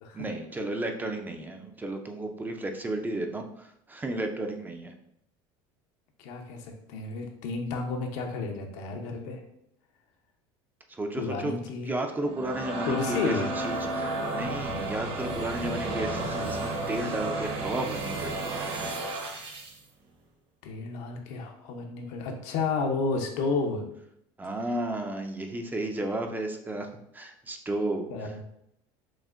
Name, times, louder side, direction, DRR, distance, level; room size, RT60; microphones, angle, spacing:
voice 1, 0.1-4.9 10.9-11.5 11.8-18.5 24.4-26.9 27.1-28.3, right 2 dB, 15° right, 4 dB, 0.4 m, -33 dB
voice 2, 6.2-9.4 11.2-12.0 12.9-13.5 20.6-23.8 28.1-28.4, left 4 dB, 70° left, 3 dB, 0.7 m, -31 dB
sound 1, 12.1-19.8, right 2 dB, 45° right, 0.9 m, -32 dB
6.1 x 2.1 x 2.5 m, 0.75 s
supercardioid pair, 105°, 13 cm